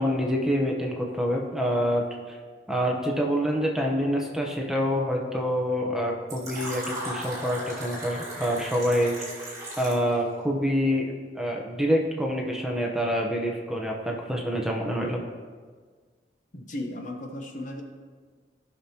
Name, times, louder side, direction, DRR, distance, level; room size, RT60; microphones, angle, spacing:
voice 1, 0.0-2.0 2.3-2.4 2.7-9.3 9.8-15.2, equal, 5° right, -1 dB, 0.8 m, -26 dB
Fill (with liquid), 6.3-10.1, right 1 dB, 20° right, 2.9 m, -36 dB
voice 2, 16.5-17.8, left 1 dB, 45° left, 3 dB, 0.9 m, -35 dB
15.0 x 6.0 x 2.9 m, 1.5 s
head